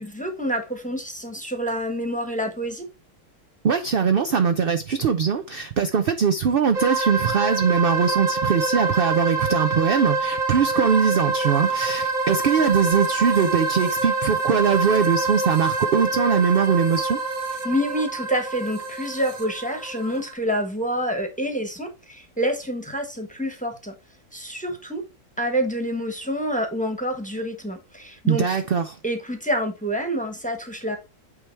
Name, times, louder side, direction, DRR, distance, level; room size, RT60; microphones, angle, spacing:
voice 1, 0.0-2.8 17.6-23.9 24.3-25.0 25.4-28.6 29.0-31.0, equal, 5° left, 1.1 m, -27 dB
voice 2, 3.6-17.2 28.3-29.0, right 6 dB, 60° right, 0.6 m, -21 dB
sound 1, 6.7-20.3, right 3 dB, 30° right, 1.1 m, -26 dB
8.8 x 3.4 x 4.5 m
omnidirectional pair, 1.6 m